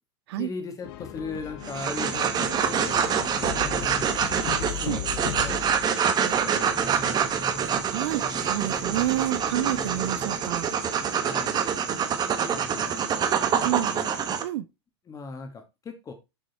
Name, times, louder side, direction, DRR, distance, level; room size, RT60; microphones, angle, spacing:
voice 1, 0.3-5.1 5.4-5.6 6.2-7.2 11.2-11.6 12.5-13.1 13.5-14.2 15.1-16.1, left 4 dB, 25° left, 2.1 m, -39 dB
sound 1, 0.8-6.0 7.2-12.1, left 13 dB, 60° left, 1.1 m, -39 dB
sound 2, 1.6-14.4, right 7 dB, 30° right, 1.4 m, -26 dB
sound 3, 5.2-5.5 6.2-11.2, right 1 dB, 5° left, 2.1 m, -44 dB
voice 2, 7.9-10.7 13.6-14.0 14.4-14.6, right 14 dB, 70° right, 0.7 m, -29 dB
7.4 x 5.4 x 4.4 m
supercardioid pair, 120°, 14 cm